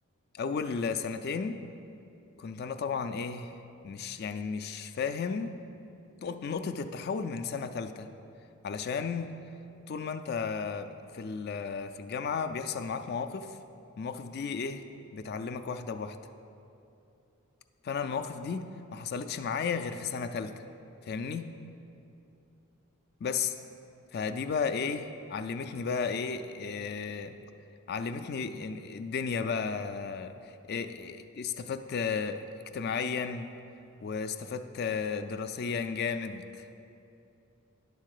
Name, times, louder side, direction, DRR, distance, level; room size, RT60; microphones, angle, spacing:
voice 1, 0.3-1.5 2.4-3.6 3.8-5.5 6.2-8.1 8.6-9.3 9.9-13.6 14.0-14.9 15.1-16.2 17.8-20.6 21.0-21.5 23.2-23.5 24.1-27.4 27.9-32.5 32.7-33.5 34.0-36.7, left 5 dB, 45° left, 9 dB, 0.3 m, -34 dB
10.5 x 3.8 x 6.5 m, 2.7 s
head